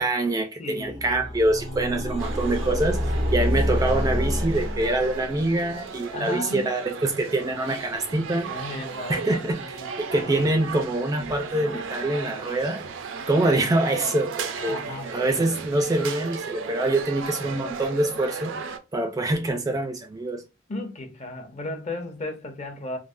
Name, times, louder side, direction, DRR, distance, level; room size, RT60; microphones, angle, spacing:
voice 1, 0.0-3.0 3.3-8.5 9.1-12.8 13.3-14.8 15.1-20.4, right 2 dB, 20° right, 0.3 m, -25 dB
voice 2, 0.6-1.3 6.1-6.7 8.4-10.3 14.5-15.4 20.7-23.0, left 2 dB, 40° left, 0.7 m, -35 dB
sound 1, 0.9-5.5, equal, 85° left, 1.1 m, -27 dB
sound 2, 2.2-18.8, right 5 dB, 90° right, 0.4 m, -36 dB
3.2 x 2.1 x 2.5 m
head